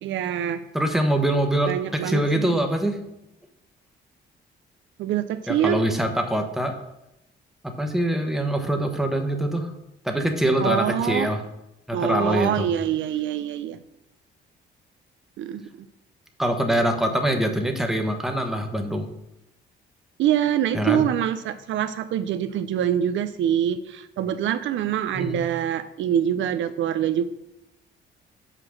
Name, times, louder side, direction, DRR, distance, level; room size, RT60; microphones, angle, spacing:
voice 1, 0.0-0.6 1.7-2.6 5.0-5.8 10.6-11.3 11.9-13.8 15.4-15.6 20.2-27.2, right 10 dB, 75° right, 10 dB, 0.5 m, -25 dB
voice 2, 0.7-3.0 5.5-6.7 7.6-9.7 10.0-11.4 11.9-12.7 16.4-19.1 20.7-21.0 25.1-25.4, right 1 dB, ahead, 4 dB, 1.1 m, -24 dB
5.8 x 4.9 x 6.3 m, 0.87 s
cardioid pair, 90°, 20 cm